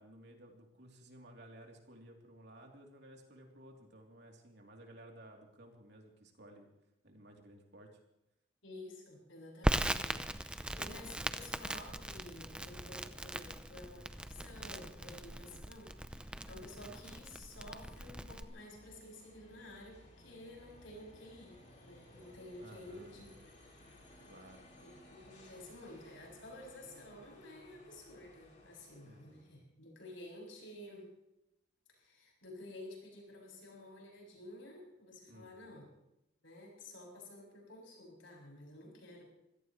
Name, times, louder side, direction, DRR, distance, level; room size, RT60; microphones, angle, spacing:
voice 1, 0.0-6.7 7.0-7.9 22.6-23.1 24.3-24.7 29.0-29.5 35.3-35.8, right 1 dB, 55° right, 0 dB, 3.3 m, -56 dB
voice 2, 8.6-23.3 24.2-24.3 24.8-31.1 31.9-35.9 36.4-39.2, left 1 dB, 70° left, -1 dB, 7.2 m, -52 dB
Crackle, 9.6-18.4, right 1 dB, 5° right, 0.5 m, -39 dB
sound 1, 10.6-29.6, left 1 dB, 40° left, 4.5 m, -61 dB
25.5 x 17.0 x 3.2 m, 0.87 s
head